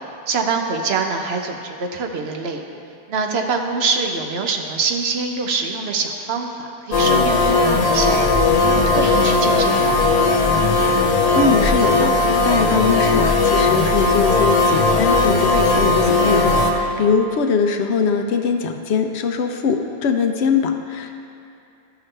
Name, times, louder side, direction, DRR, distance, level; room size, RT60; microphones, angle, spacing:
voice 1, 0.3-2.6 3.1-8.2 8.6-10.2, right 4 dB, 75° right, 3 dB, 1.0 m, -24 dB
sound 1, 6.9-16.7, left 3 dB, 40° left, 0.7 m, -17 dB
voice 2, 11.3-21.1, left 5 dB, 85° left, 5 dB, 0.9 m, -21 dB
12.5 x 5.9 x 3.3 m, 2.6 s
omnidirectional pair, 1.1 m